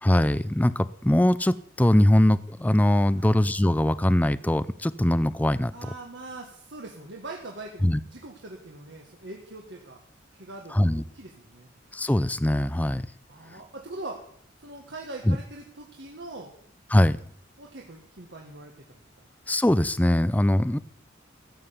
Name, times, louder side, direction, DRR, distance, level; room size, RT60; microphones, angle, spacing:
voice 1, 0.0-5.7 7.8-8.0 10.7-11.0 11.9-13.1 15.3-15.4 16.9-17.2 19.5-20.8, left 1 dB, 10° left, 16 dB, 0.4 m, -22 dB
voice 2, 5.7-10.0 10.3-11.7 13.3-14.2 14.6-16.5 17.6-19.0, right 2 dB, 60° right, 0 dB, 1.7 m, -42 dB
14.5 x 7.9 x 7.0 m, 0.63 s
head